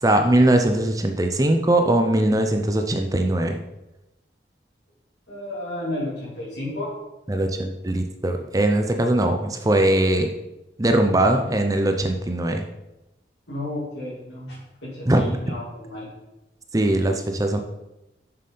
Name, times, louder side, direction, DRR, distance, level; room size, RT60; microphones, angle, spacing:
voice 1, 0.0-3.6 7.3-10.3 10.8-12.6 15.1-15.4 16.7-17.6, right 1 dB, 20° right, 5 dB, 0.6 m, -20 dB
voice 2, 5.3-6.9 11.2-11.3 13.5-16.0, left 1 dB, 85° left, -9 dB, 2.8 m, -32 dB
7.0 x 6.8 x 5.5 m, 0.97 s
head